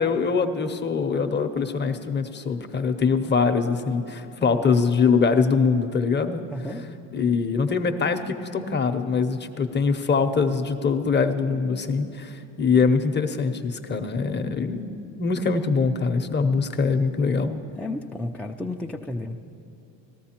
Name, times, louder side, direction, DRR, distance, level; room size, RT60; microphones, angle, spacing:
voice 1, 0.0-6.4 7.1-17.6, left 5 dB, 25° left, 7 dB, 0.8 m, -23 dB
voice 2, 4.4-4.8 6.5-6.8 17.7-19.4, left 2 dB, 5° left, 0 dB, 0.4 m, -33 dB
18.5 x 13.5 x 2.9 m, 2.6 s
supercardioid pair, 80°, 39 cm